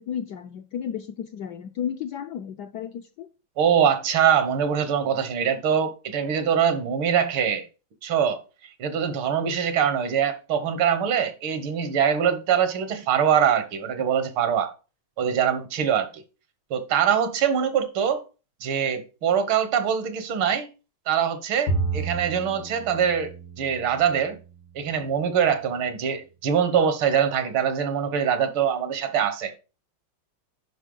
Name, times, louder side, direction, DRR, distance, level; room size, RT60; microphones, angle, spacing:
voice 1, 0.0-3.3, left 8 dB, 75° left, 0.9 m, -33 dB
voice 2, 3.6-7.7 8.0-8.4 8.8-14.7 15.2-16.2 16.7-18.2 18.6-20.7 21.1-24.4 24.8-29.5, right 8 dB, 80° right, 1.9 m, -23 dB
Bowed string instrument, 21.7-25.1, right 3 dB, 90° left, 2.2 m, -32 dB
10.0 x 5.1 x 3.8 m
omnidirectional pair, 2.3 m